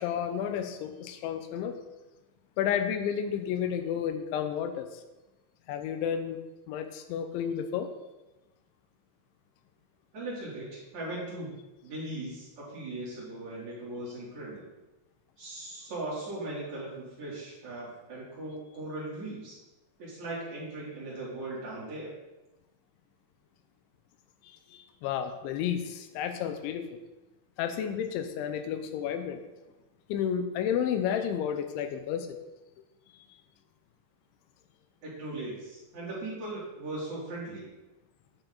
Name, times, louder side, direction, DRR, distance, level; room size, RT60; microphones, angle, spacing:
voice 1, 0.0-1.8 2.6-5.0 5.7-6.4 6.7-7.9 24.4-27.0 27.6-29.4 30.1-32.3, left 8 dB, 85° left, 8 dB, 3.1 m, -31 dB
voice 2, 10.1-11.5 11.8-14.6 15.4-19.6 20.0-22.1 35.0-37.6, right 2 dB, 40° right, -7 dB, 3.9 m, -38 dB
10.5 x 8.9 x 4.0 m, 1.1 s
omnidirectional pair, 5.3 m